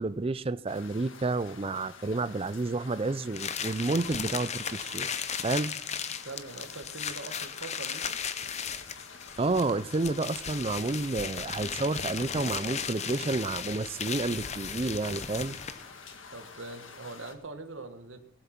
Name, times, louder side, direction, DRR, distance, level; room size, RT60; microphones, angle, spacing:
voice 1, 0.0-5.1 5.4-5.8 9.4-15.6, right 3 dB, 30° right, 0.5 m, -30 dB
sound 1, 0.7-17.4, left 5 dB, 75° left, 1.6 m, -49 dB
sound 2, 3.3-15.9, left 7 dB, 35° left, 0.7 m, -36 dB
voice 2, 6.2-8.2 16.3-18.2, right 3 dB, 75° right, 1.4 m, -42 dB
18.5 x 8.1 x 5.9 m
head